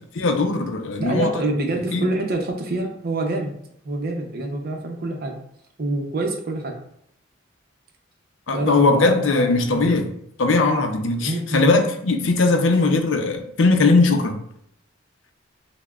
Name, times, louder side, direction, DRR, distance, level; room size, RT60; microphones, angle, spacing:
voice 1, 0.2-1.3 1.9-2.1 8.5-10.0 10.4-14.4, left 3 dB, 65° left, 4 dB, 0.5 m, -19 dB
voice 2, 1.0-3.5 3.8-5.4 5.8-6.7 8.5-10.0 11.2-11.7, right 2 dB, 50° right, 3 dB, 0.6 m, -26 dB
5.6 x 2.1 x 2.3 m, 0.71 s
head